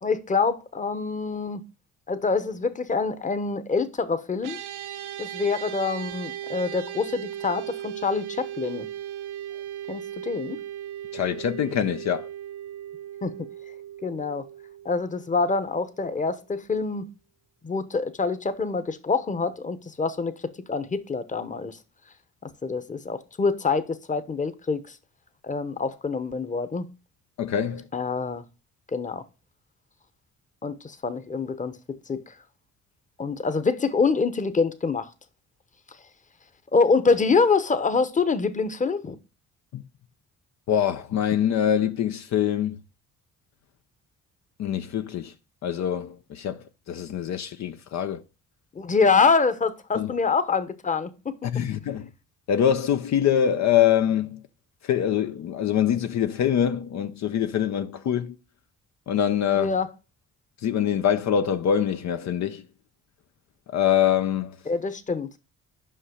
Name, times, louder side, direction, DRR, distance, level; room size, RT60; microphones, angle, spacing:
voice 1, 0.0-1.6 2.1-4.6 5.2-8.9 9.9-10.6 13.2-13.5 14.0-14.5 14.8-17.1 17.6-21.8 22.4-25.0 25.4-26.8 27.9-28.4 28.9-29.2 30.6-32.3 33.2-35.1 36.7-39.2 48.7-51.3 59.6-59.9 64.7-65.3, left 4 dB, 25° left, 1.0 m, -25 dB
sound 1, 4.4-15.9, right 11 dB, 85° right, 0.9 m, -37 dB
voice 2, 11.1-12.3 27.4-27.9 39.7-39.8 40.7-42.8 44.6-45.3 45.6-48.2 49.9-50.1 51.4-52.1 52.5-54.4 54.8-58.4 59.1-59.8 60.6-62.6 63.7-64.6, left 9 dB, 65° left, 0.7 m, -24 dB
5.7 x 5.6 x 6.4 m
cardioid pair, 90°, 30 cm